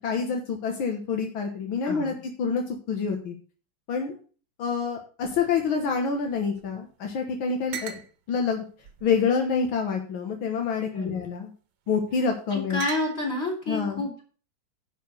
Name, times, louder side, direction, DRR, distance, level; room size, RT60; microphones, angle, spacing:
voice 1, 0.0-3.4 3.9-4.2 4.6-8.0 8.3-8.6 9.0-11.5 11.9-12.8 13.7-14.0, left 5 dB, 80° left, 3 dB, 2.1 m, -27 dB
sound 1, 5.2-6.9 7.1-7.2 7.7-8.1 8.8-9.7 10.5-10.9 11.9-12.3 12.8-13.5, right 8 dB, 75° right, 1.8 m, -42 dB
voice 2, 12.5-14.2, left 2 dB, 30° left, -1 dB, 4.0 m, -29 dB
11.0 x 4.8 x 6.4 m, 0.39 s
omnidirectional pair, 2.2 m